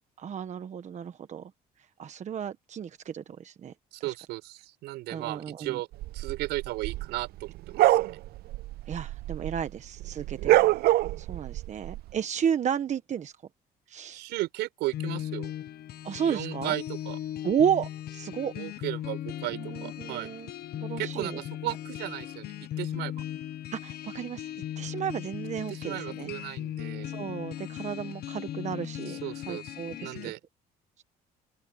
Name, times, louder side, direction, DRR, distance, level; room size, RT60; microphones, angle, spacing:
voice 1, 0.2-1.5 2.0-3.7 4.0-4.1 5.1-5.8 8.9-10.7 11.2-13.3 13.9-14.2 16.0-16.7 17.4-18.5 19.5-21.4 23.7-24.5 24.8-26.3 27.1-29.2 29.5-30.3 31.0-31.1, right 8 dB, 45° right, 1.3 m, -32 dB
voice 2, 3.9-5.9 6.1-8.1 14.1-15.5 16.2-17.2 18.5-20.3 21.0-23.1 25.7-27.1 29.1-29.7 30.0-30.4, right 18 dB, 90° right, 6.3 m, -35 dB
sound 1, 6.0-9.7 10.0-12.0, right 17 dB, 65° right, 0.4 m, -25 dB
sound 2, 14.9-30.3, left 12 dB, 65° left, 1.2 m, -38 dB
open air
cardioid pair, 110°, 17 cm